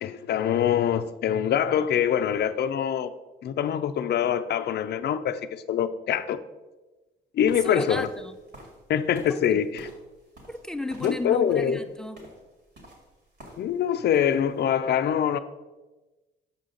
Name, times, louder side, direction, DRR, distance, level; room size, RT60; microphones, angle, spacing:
voice 1, 0.0-3.1 3.4-6.4 7.3-8.1 8.9-9.9 11.0-11.8 13.6-15.4, left 9 dB, 55° left, 12 dB, 0.5 m, -24 dB
sound 1, 7.4-13.8 14.1-14.6, equal, 60° right, 2.1 m, -50 dB
voice 2, 7.6-8.4 9.3-9.6 10.5-12.3, left 2 dB, 5° left, 10 dB, 0.5 m, -34 dB
7.2 x 5.7 x 3.8 m, 1.2 s
cardioid pair, 90°, 20 cm